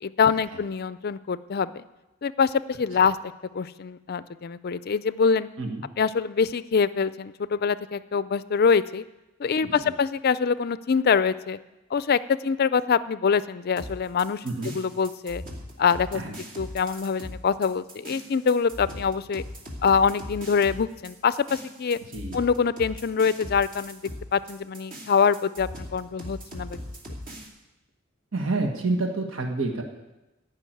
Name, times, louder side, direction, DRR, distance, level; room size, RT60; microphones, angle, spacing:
voice 1, 0.0-1.8 2.2-3.2 3.5-5.5 6.0-9.0 9.4-11.6 11.9-14.4 14.7-15.4 15.8-16.2 16.6-19.4 19.8-22.0 22.3-24.0 24.3-26.8, left 6 dB, 50° left, 16 dB, 0.4 m, -24 dB
voice 2, 9.6-9.9 14.4-14.7 16.1-16.4 22.1-22.4 28.3-29.8, right 2 dB, 65° right, 1 dB, 1.6 m, -29 dB
sound 1, 13.8-27.5, equal, 40° right, 2.5 m, -40 dB
15.0 x 5.9 x 9.1 m, 1.0 s
head